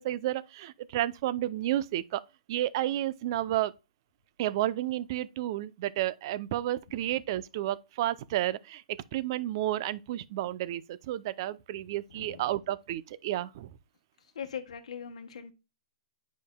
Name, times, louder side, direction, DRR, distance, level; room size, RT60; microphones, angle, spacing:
voice 1, 0.0-2.2 2.5-3.7 4.4-8.8 9.1-13.7, right 13 dB, 40° right, 0.5 m, -31 dB
voice 2, 12.1-12.4 14.2-15.5, left 7 dB, 80° left, 1.1 m, -41 dB
9.4 x 5.2 x 2.2 m
hypercardioid pair, 165°, 4 cm